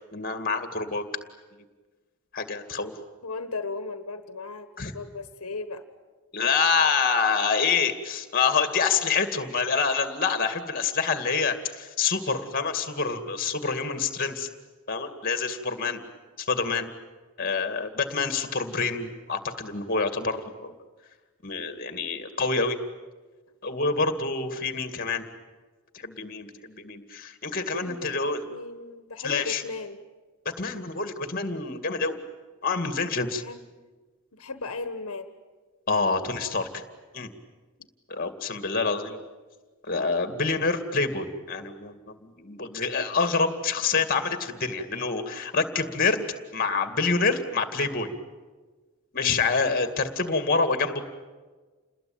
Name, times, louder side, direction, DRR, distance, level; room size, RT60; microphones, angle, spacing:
voice 1, 0.1-1.1 2.3-2.9 4.8-4.9 6.3-14.5 14.9-16.0 16.4-16.9 17.4-20.7 21.4-22.8 23.6-25.2 25.9-28.4 29.2-29.6 30.6-32.2 32.6-33.4 35.9-36.8 37.1-37.3 38.1-39.2 39.9-46.2 46.5-48.1 49.1-51.0, left 4 dB, 40° left, 8 dB, 2.3 m, -27 dB
voice 2, 3.2-4.7 4.9-5.8 15.8-16.0 27.7-30.0 33.1-33.6 34.3-35.3 49.1-49.4, left 3 dB, 80° left, 9 dB, 1.5 m, -37 dB
29.0 x 21.0 x 8.9 m, 1.3 s
head